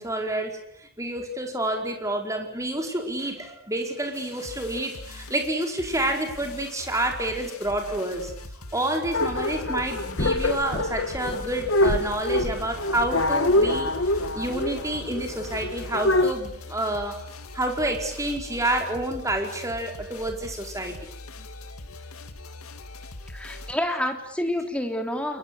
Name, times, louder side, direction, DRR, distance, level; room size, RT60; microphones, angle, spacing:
voice 1, 0.0-8.3 8.7-17.2 17.5-20.9, right 1 dB, 15° right, 3 dB, 4.7 m, -29 dB
sound 1, 4.1-23.7, left 2 dB, 90° left, 2.4 m, -42 dB
sound 2, 9.1-16.3, left 1 dB, 60° left, 1.7 m, -25 dB
voice 2, 23.3-25.4, left 1 dB, 5° left, 4 dB, 3.4 m, -28 dB
29.0 x 22.5 x 8.4 m, 0.69 s
head